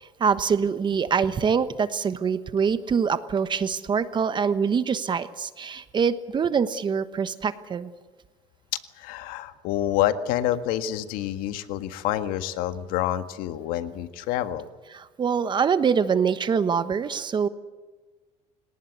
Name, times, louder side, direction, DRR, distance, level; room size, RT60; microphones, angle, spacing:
voice 1, 0.0-7.9 14.9-17.5, right 6 dB, 30° right, 12 dB, 1.2 m, -24 dB
voice 2, 9.0-14.7, left 12 dB, 75° left, 10 dB, 1.7 m, -27 dB
29.0 x 18.5 x 8.2 m, 1.3 s
cardioid pair, 115°, 15 cm